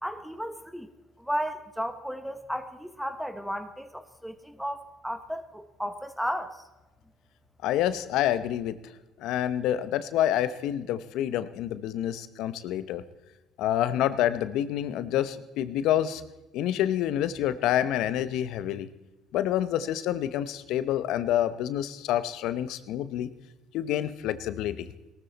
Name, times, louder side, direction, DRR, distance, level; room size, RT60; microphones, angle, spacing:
voice 1, 0.0-0.9 1.2-6.6, equal, ahead, 10 dB, 1.1 m, -34 dB
voice 2, 7.6-8.8 9.2-13.0 13.6-16.2 16.5-18.9 19.3-23.3 23.7-24.9, left 11 dB, 75° left, 14 dB, 0.8 m, -28 dB
18.0 x 13.5 x 4.1 m, 1.0 s
supercardioid pair, 80°, 0 cm